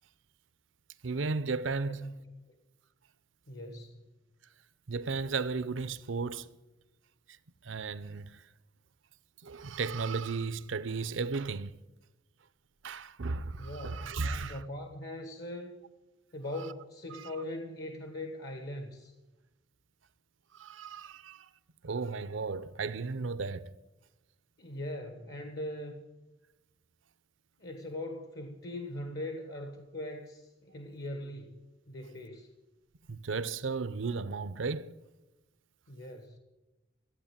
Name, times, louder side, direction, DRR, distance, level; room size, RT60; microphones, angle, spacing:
voice 1, 1.0-2.0 4.9-6.5 7.6-8.4 9.4-11.7 12.8-14.6 17.1-17.3 20.5-21.5 21.8-23.7 33.1-35.0, right 4 dB, 85° right, 0.7 m, -34 dB
voice 2, 1.9-2.6 3.5-4.0 13.6-15.8 16.3-19.1 24.6-26.0 27.6-31.6 31.9-32.5 35.9-36.4, left 1 dB, 60° left, 1.3 m, -41 dB
15.0 x 8.8 x 8.8 m
head